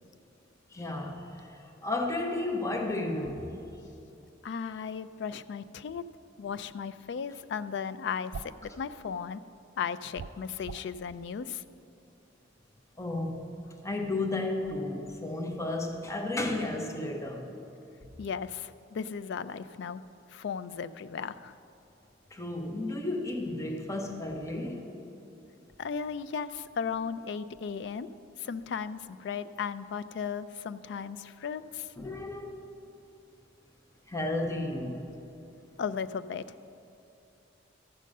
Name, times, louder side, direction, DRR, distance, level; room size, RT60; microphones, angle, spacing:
voice 1, 0.7-3.5 13.0-13.5 13.8-17.5 22.3-24.9 32.0-32.6 34.1-35.0, left 2 dB, 15° left, 1 dB, 0.8 m, -33 dB
voice 2, 4.4-6.1 6.4-9.4 9.8-11.6 18.2-20.0 20.3-21.6 25.8-28.1 28.4-31.9 35.8-36.4, left 6 dB, 60° left, 14 dB, 0.3 m, -36 dB
sound 1, 8.3-8.6 10.1-10.9, right 4 dB, 65° right, 0.3 m, -41 dB
14.0 x 6.5 x 5.3 m, 2.7 s
head